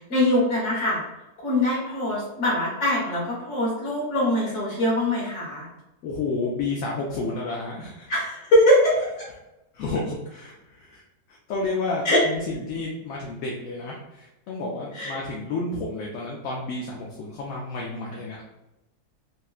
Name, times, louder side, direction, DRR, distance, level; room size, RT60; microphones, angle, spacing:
voice 1, 0.1-1.0 1.4-5.7 8.1-8.9 12.0-12.2 14.9-15.1, left 1 dB, 50° left, -6 dB, 1.5 m, -22 dB
voice 2, 6.0-8.1 9.7-11.0 11.3-18.4, left 3 dB, 70° left, -2 dB, 0.9 m, -31 dB
3.6 x 2.1 x 2.4 m, 0.95 s
omnidirectional pair, 1.6 m